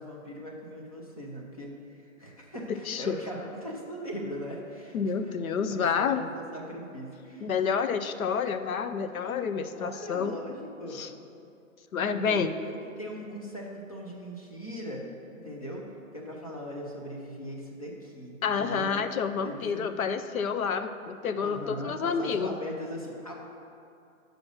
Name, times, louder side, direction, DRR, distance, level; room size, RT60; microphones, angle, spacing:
voice 1, 0.0-5.3 5.7-7.5 9.8-11.0 12.2-15.9 16.1-18.9 19.4-19.9 21.4-23.3, equal, 25° left, -1 dB, 0.6 m, -39 dB
voice 2, 2.7-3.2 4.9-6.2 7.4-10.4 10.9-11.1 11.9-12.5 18.4-22.5, left 6 dB, 75° left, 10 dB, 0.6 m, -29 dB
6.1 x 5.1 x 6.3 m, 2.6 s
hypercardioid pair, 180°, 42 cm